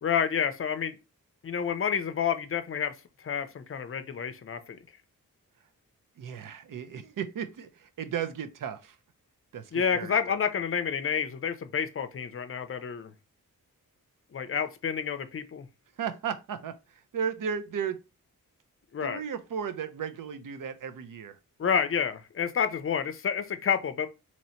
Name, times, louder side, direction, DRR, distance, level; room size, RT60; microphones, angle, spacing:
voice 1, 0.0-1.0 1.4-2.9 3.2-4.8 9.7-13.1 14.3-15.7 18.9-19.2 21.6-24.1, left 7 dB, 40° left, 0.5 m, -29 dB
voice 2, 6.2-9.0 9.5-10.4 16.0-18.0 19.0-21.4, right 7 dB, 70° right, 0.6 m, -35 dB
2.9 x 2.8 x 4.2 m
wide cardioid pair, 165°, 34 cm